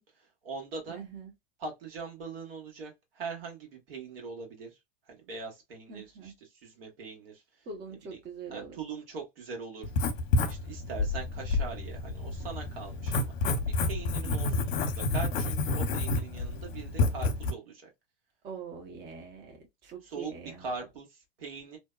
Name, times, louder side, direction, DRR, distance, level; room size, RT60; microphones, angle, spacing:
voice 1, 0.2-1.0 1.6-4.8 5.1-7.7 8.5-9.9 10.4-17.9 20.0-21.8, right 4 dB, 70° right, 1.4 m, -42 dB
voice 2, 0.9-1.3 5.9-6.3 7.7-8.8 14.2-14.7 18.4-20.7, right 5 dB, 35° right, 0.9 m, -43 dB
Writing, 9.8-17.5, left 2 dB, 55° left, 0.7 m, -29 dB
2.6 x 2.1 x 2.3 m
hypercardioid pair, 100°, 30 cm